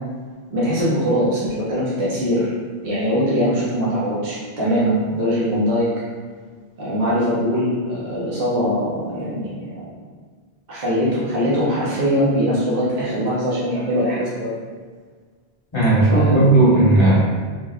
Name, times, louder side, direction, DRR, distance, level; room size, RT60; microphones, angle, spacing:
voice 1, 0.5-2.5 2.8-5.9 6.8-9.8 10.7-14.5 16.1-16.4, equal, 50° right, -9 dB, 0.9 m, -21 dB
voice 2, 15.7-17.2, right 2 dB, 30° left, -8 dB, 1.0 m, -14 dB
3.3 x 3.2 x 2.3 m, 1.5 s
omnidirectional pair, 1.0 m